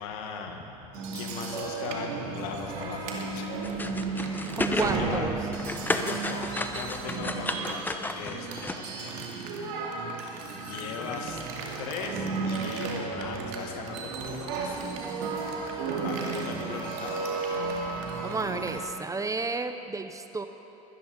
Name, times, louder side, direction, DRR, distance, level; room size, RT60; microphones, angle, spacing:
voice 1, 0.0-3.5 4.2-5.3 5.8-9.6 10.7-11.4 11.8-14.8 16.0-17.2, left 6 dB, 75° left, 4 dB, 2.0 m, -39 dB
sound 1, 0.9-18.8, right 4 dB, 70° right, 2.5 m, -34 dB
sound 2, 3.6-4.9 5.3-8.8, left 2 dB, 10° left, 1.0 m, -32 dB
voice 2, 4.6-5.4 16.3-16.8 18.2-20.5, right 3 dB, 20° right, 8 dB, 0.9 m, -32 dB
23.5 x 10.0 x 5.4 m, 2.9 s
hypercardioid pair, 85°, 18 cm